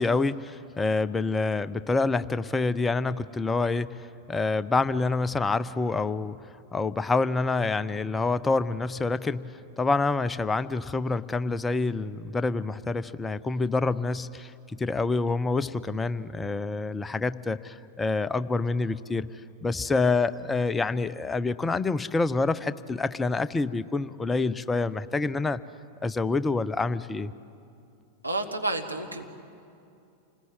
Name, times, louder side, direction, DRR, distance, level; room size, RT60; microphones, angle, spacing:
voice 1, 0.0-4.0 4.3-6.4 6.7-19.3 19.6-25.6 26.0-27.3, left 3 dB, 15° left, 15 dB, 0.6 m, -27 dB
voice 2, 28.2-29.2, right 2 dB, 85° right, 2 dB, 1.9 m, -30 dB
28.0 x 20.5 x 9.2 m, 2.6 s
figure-of-eight pair, 90°, 0 cm